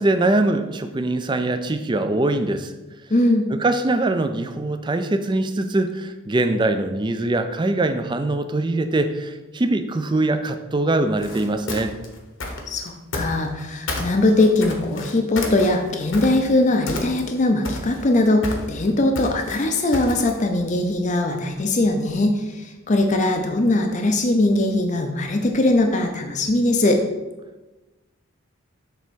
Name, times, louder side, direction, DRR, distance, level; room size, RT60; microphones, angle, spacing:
voice 1, 0.0-2.7 3.5-11.9, right 2 dB, 20° right, 9 dB, 0.4 m, -22 dB
voice 2, 3.1-3.5 12.7-27.0, left 2 dB, 35° left, 4 dB, 0.5 m, -20 dB
sound 1, 11.1-13.6 13.9-16.6 16.9-17.4 17.6-20.4, left 2 dB, 60° left, 1.1 m, -31 dB
6.8 x 3.5 x 6.2 m, 1.1 s
head